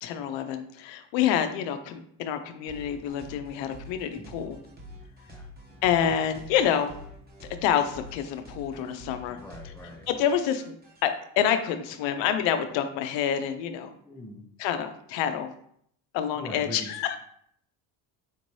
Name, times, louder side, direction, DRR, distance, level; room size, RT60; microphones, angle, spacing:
voice 1, 0.0-4.6 5.8-6.9 7.6-9.4 10.1-10.7 11.0-13.9 14.6-15.5 16.1-17.2, left 9 dB, 85° left, 8 dB, 0.6 m, -27 dB
sound 1, 2.7-11.1, left 1 dB, 20° right, 1.0 m, -47 dB
voice 2, 9.3-10.1 14.0-14.4 16.3-16.9, left 1 dB, 5° left, 2 dB, 0.5 m, -42 dB
4.4 x 2.6 x 3.1 m, 0.67 s
cardioid pair, 120°, 44 cm